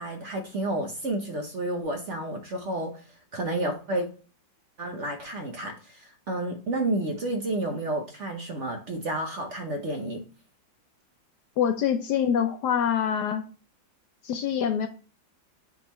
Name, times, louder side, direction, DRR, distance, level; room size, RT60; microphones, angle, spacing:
voice 1, 0.0-3.0 3.3-4.1 4.8-10.2, right 1 dB, 50° right, 1.0 m, -30 dB
voice 2, 11.6-13.5 14.2-14.9, left 8 dB, 70° left, 1.1 m, -25 dB
8.3 x 4.0 x 2.9 m
omnidirectional pair, 2.1 m